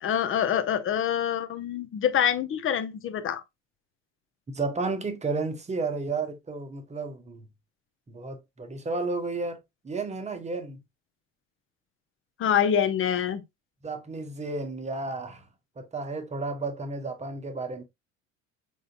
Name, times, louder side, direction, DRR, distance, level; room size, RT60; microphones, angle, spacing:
voice 1, 0.0-3.4 12.4-13.4, left 9 dB, 35° left, 0.7 m, -25 dB
voice 2, 4.5-7.5 8.1-10.8 13.8-15.5 15.8-17.8, right 3 dB, 15° right, 0.9 m, -32 dB
5.4 x 3.8 x 2.4 m
figure-of-eight pair, 65°, 39 cm